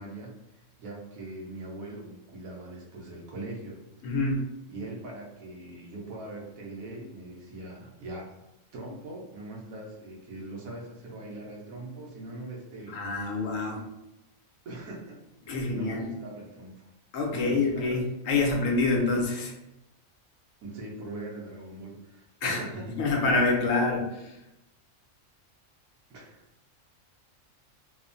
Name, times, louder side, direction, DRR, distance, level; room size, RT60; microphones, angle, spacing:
voice 1, 0.0-3.8 4.1-4.2 4.7-8.3 8.7-13.3 14.6-16.9 17.3-18.0 20.6-23.1 26.1-26.4, right 2 dB, 85° right, -2 dB, 1.2 m, -41 dB
voice 2, 4.0-4.4 12.9-13.8 15.5-16.1 17.1-19.5 22.4-22.6 23.0-24.3, left 3 dB, 75° left, 0 dB, 1.0 m, -26 dB
3.0 x 2.1 x 2.5 m, 0.90 s
omnidirectional pair, 1.4 m